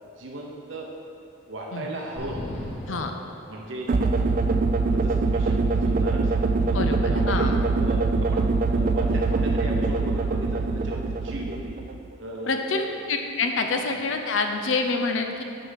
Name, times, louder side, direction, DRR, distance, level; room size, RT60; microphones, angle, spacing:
voice 1, 0.2-0.9 1.5-2.4 2.8-4.4 4.8-6.8 7.1-8.4 8.7-11.8 12.2-12.9 13.9-14.0, right 1 dB, 75° right, -1 dB, 0.8 m, -37 dB
sound 1, 2.2-4.1, left 1 dB, 35° left, 1.6 m, -37 dB
sound 2, 3.9-12.1, right 3 dB, 45° right, 0.4 m, -23 dB
voice 2, 6.6-7.6 12.5-15.4, left 3 dB, 80° left, 5 dB, 0.6 m, -27 dB
6.5 x 4.7 x 5.7 m, 2.5 s
head